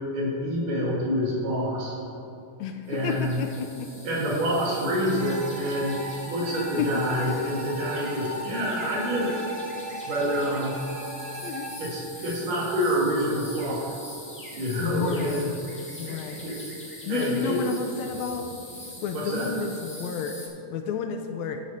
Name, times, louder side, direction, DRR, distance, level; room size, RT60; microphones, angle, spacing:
voice 1, 0.1-2.0 2.9-3.3 4.0-9.4 10.1-10.7 11.8-13.9 14.5-15.5 16.0-16.6 17.1-17.6 19.1-19.5, equal, 85° right, -5 dB, 3.6 m, -27 dB
voice 2, 2.6-3.9 6.8-6.9 7.4-7.5 11.4-11.7 14.8-16.5 17.0-18.5 19.0-21.6, left 6 dB, 80° left, 6 dB, 1.6 m, -31 dB
sound 1, 2.9-20.5, left 1 dB, 15° left, 0.4 m, -43 dB
sound 2, 5.2-11.7, right 1 dB, 40° right, 1.0 m, -38 dB
11.0 x 4.2 x 6.6 m, 2.9 s
omnidirectional pair, 3.6 m